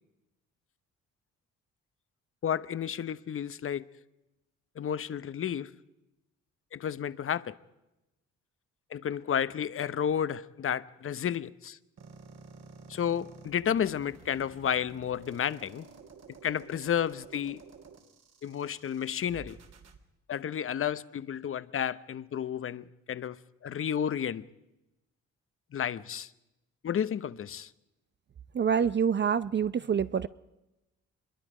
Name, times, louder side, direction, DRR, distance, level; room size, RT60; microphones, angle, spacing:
voice 1, 2.4-3.8 4.8-5.7 6.7-7.5 8.9-11.8 12.9-15.9 16.4-17.6 18.4-19.6 20.3-24.5 25.7-26.3 26.8-27.7, left 8 dB, 45° left, 0.9 m, -32 dB
sound 1, 12.0-20.0, right 4 dB, 55° right, 3.1 m, -51 dB
voice 2, 28.5-30.3, right 7 dB, 35° right, 0.6 m, -26 dB
25.5 x 22.0 x 5.0 m
cardioid pair, 90°, 30 cm